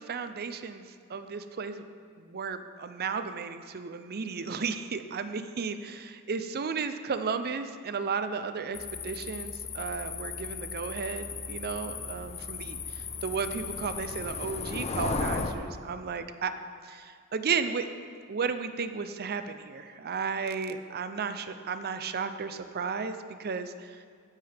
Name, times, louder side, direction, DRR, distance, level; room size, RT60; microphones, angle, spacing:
voice 1, 0.0-1.9 2.2-16.5 16.8-17.9 18.3-24.0, right 5 dB, 45° right, 10 dB, 0.6 m, -34 dB
sound 1, 8.7-15.5, left 4 dB, 30° left, 0.6 m, -36 dB
13.5 x 10.5 x 3.5 m, 2.1 s
head